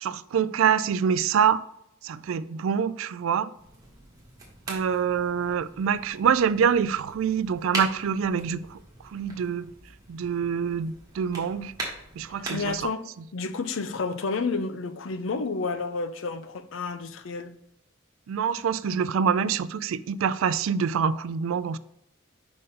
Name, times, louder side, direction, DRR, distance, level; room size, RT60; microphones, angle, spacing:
voice 1, 0.0-1.6 2.0-3.5 4.7-8.8 9.1-9.7 10.1-11.7 12.2-12.8 18.3-21.8, right 7 dB, 75° right, 0.3 m, -25 dB
sound 1, 3.5-12.9, right 2 dB, 20° right, 1.7 m, -41 dB
voice 2, 12.5-17.5, left 4 dB, 65° left, 0.5 m, -30 dB
5.6 x 5.3 x 3.7 m
head